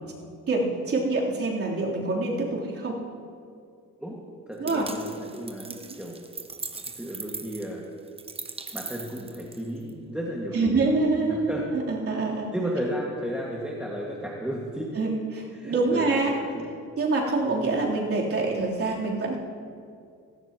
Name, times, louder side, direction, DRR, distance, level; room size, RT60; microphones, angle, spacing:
voice 1, 0.5-3.0 4.6-4.9 10.5-12.5 15.0-16.3 17.0-19.4, right 3 dB, 50° right, -4 dB, 3.4 m, -26 dB
voice 2, 4.5-6.2 6.9-7.8 8.7-11.6 12.2-14.9 15.5-16.7, equal, 5° right, -3 dB, 1.8 m, -34 dB
sound 1, 4.7-9.9, right 3 dB, 20° right, 0.9 m, -39 dB
17.5 x 16.0 x 3.0 m, 2.3 s
cardioid pair, 90°, 30 cm